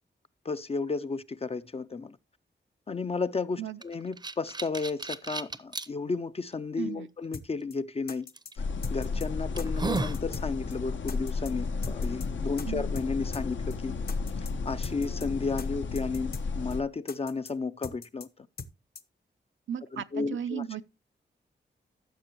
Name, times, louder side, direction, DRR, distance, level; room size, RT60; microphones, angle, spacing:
voice 1, 0.4-2.2 2.9-8.3 8.9-13.9 14.7-18.5 19.9-20.6, left 4 dB, 30° left, 0.4 m, -33 dB
sound 1, 3.8-5.9 6.5-6.6 8.4-8.5 9.1-9.2 9.6-10.2, right 3 dB, 20° right, 0.6 m, -33 dB
voice 2, 6.8-7.1 12.6-12.8 19.7-20.8, right 9 dB, 85° right, 0.6 m, -35 dB
sound 2, 7.3-7.5 7.7-7.8 8.1-8.5 8.8-9.3 9.6-9.7 10.0-10.5 10.7-10.8 11.1-11.5 11.8-12.3 12.6-12.7 13.0-13.1 13.3-13.5 13.7-13.8 14.1-14.5 14.8-15.3 15.6-15.7 16.0-16.5 16.7-16.8 17.1-17.5 17.8-18.3 18.6-18.7 19.0-19.1, left 5 dB, 55° left, 0.9 m, -41 dB
sound 3, 8.6-16.8, left 4 dB, 80° left, 1.0 m, -33 dB
15.0 x 6.7 x 3.0 m
wide cardioid pair, 145°, 19 cm